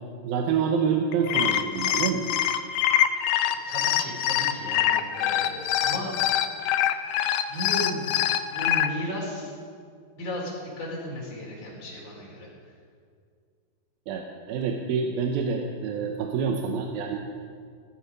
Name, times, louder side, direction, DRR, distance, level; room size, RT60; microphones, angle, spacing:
voice 1, 0.2-2.2 14.1-17.2, right 6 dB, 75° right, 3 dB, 2.4 m, -27 dB
sound 1, 1.1-8.9, left 11 dB, 80° left, 2.4 m, -24 dB
voice 2, 3.7-6.2 7.5-9.5 10.2-12.5, equal, 45° left, -3 dB, 5.1 m, -35 dB
16.0 x 14.0 x 5.3 m, 2.2 s
omnidirectional pair, 4.9 m